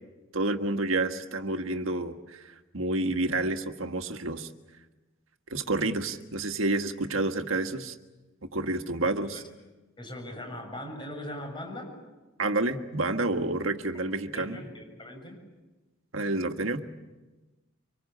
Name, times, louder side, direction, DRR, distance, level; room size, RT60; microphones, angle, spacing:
voice 1, 0.3-2.4 2.7-4.5 5.5-7.9 8.4-9.4 12.4-14.6 16.1-16.9, right 2 dB, 70° right, 7 dB, 1.6 m, -29 dB
voice 2, 10.0-11.9 14.3-15.4, left 1 dB, 25° left, 2 dB, 7.2 m, -40 dB
25.0 x 24.5 x 8.6 m, 1.1 s
head